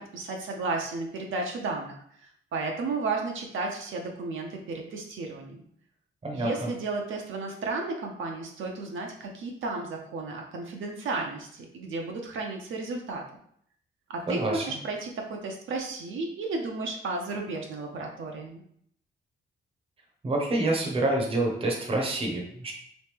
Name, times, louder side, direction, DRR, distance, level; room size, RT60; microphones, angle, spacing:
voice 1, 0.0-5.6 6.3-13.2 14.1-18.6, right 3 dB, 70° right, 1 dB, 0.6 m, -33 dB
voice 2, 14.3-14.8 20.2-22.7, right 2 dB, 25° right, 0 dB, 0.7 m, -27 dB
3.2 x 3.1 x 3.4 m, 0.67 s
wide cardioid pair, 165°, 21 cm